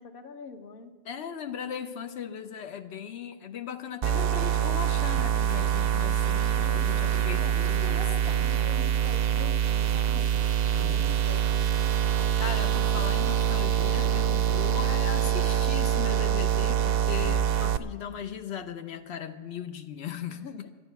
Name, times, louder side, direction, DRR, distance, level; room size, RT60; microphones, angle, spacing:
voice 1, 0.0-0.9 6.5-10.3 10.8-11.6 20.3-20.7, left 4 dB, 60° left, 8 dB, 1.0 m, -44 dB
voice 2, 1.0-8.7 10.7-11.3 12.0-20.7, left 8 dB, 90° left, 7 dB, 1.0 m, -38 dB
sound 1, 4.0-17.8, right 10 dB, 70° right, 0.8 m, -25 dB
12.0 x 10.5 x 8.1 m, 1.4 s
omnidirectional pair, 1.0 m